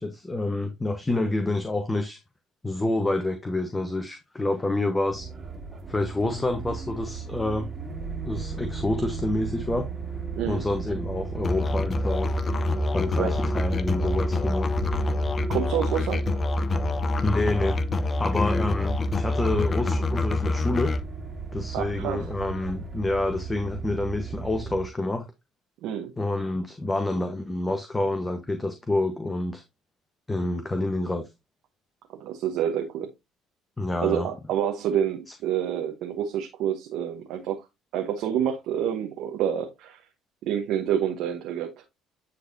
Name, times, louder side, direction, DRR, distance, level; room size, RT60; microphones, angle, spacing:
voice 1, 0.0-2.2 2.6-5.3 5.9-7.7 8.3-9.9 10.5-12.3 12.9-14.7 17.2-17.8 18.2-20.9 21.5-25.2 26.2-29.6 30.3-31.2 33.8-34.3, left 2 dB, 20° left, 1.1 m, -28 dB
sound 1, 5.1-24.9, right 4 dB, 25° right, 2.1 m, -35 dB
Musical instrument, 11.4-21.0, left 2 dB, 35° left, 0.7 m, -26 dB
voice 2, 15.5-16.3 21.7-22.3 25.8-26.1 32.2-33.1 34.0-37.6 37.9-40.0 40.4-41.7, right 9 dB, 65° right, 1.0 m, -28 dB
9.8 x 3.9 x 2.7 m
hypercardioid pair, 65°, 0 cm